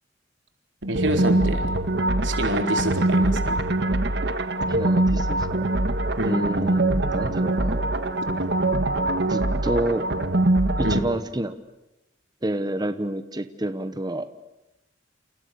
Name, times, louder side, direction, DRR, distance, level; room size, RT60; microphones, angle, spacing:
voice 1, 0.8-1.7 2.2-3.7 6.2-6.4 8.0-8.1 10.8-11.0, right 1 dB, 85° right, 5 dB, 4.1 m, -26 dB
sound 1, 0.9-11.0, right 2 dB, 65° right, 1.6 m, -23 dB
voice 2, 4.7-5.7 6.2-7.9 9.3-10.0 10.8-11.6 12.4-14.3, right 1 dB, 20° right, 10 dB, 1.1 m, -29 dB
29.0 x 29.0 x 7.0 m, 0.96 s
head